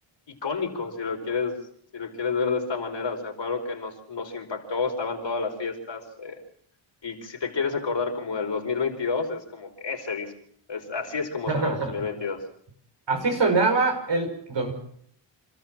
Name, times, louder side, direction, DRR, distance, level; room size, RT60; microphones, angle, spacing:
voice 1, 0.3-1.6 1.9-6.4 7.0-10.3 10.7-12.4, left 4 dB, 60° left, 2 dB, 5.1 m, -30 dB
voice 2, 11.5-11.9 13.1-14.7, right 3 dB, 60° right, 4 dB, 6.0 m, -24 dB
28.0 x 13.5 x 7.5 m, 0.67 s
cardioid pair, 70°, 50 cm